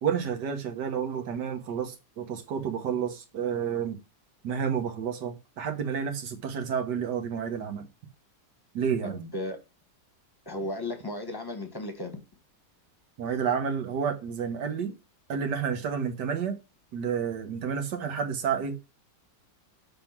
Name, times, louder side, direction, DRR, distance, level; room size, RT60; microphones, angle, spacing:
voice 1, 0.0-4.0 4.4-7.9 8.7-9.2 13.2-14.9 15.3-16.6 16.9-18.8, right 7 dB, 70° right, 1.7 m, -30 dB
voice 2, 9.0-9.6 10.5-12.1, left 1 dB, 15° left, 1.1 m, -35 dB
6.7 x 3.6 x 5.9 m
omnidirectional pair, 1.9 m